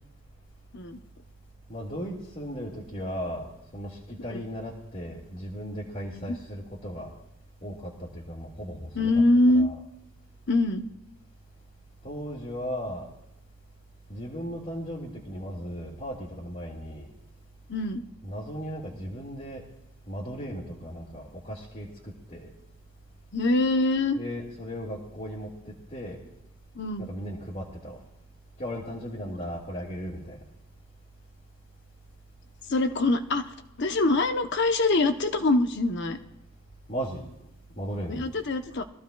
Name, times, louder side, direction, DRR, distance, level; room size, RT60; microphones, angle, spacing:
voice 1, 1.7-7.1 7.6-9.1 9.5-9.8 12.0-13.1 14.1-17.1 18.2-19.6 20.1-22.5 24.2-26.2 27.0-28.0 28.6-30.4 36.9-37.2 37.8-38.3, equal, 35° left, -4 dB, 1.9 m, -36 dB
voice 2, 8.9-9.7 10.5-10.9 17.7-18.0 23.3-24.2 26.7-27.1 32.7-36.2 38.1-38.8, left 2 dB, 50° left, 7 dB, 0.8 m, -24 dB
23.0 x 14.5 x 2.3 m, 0.84 s
head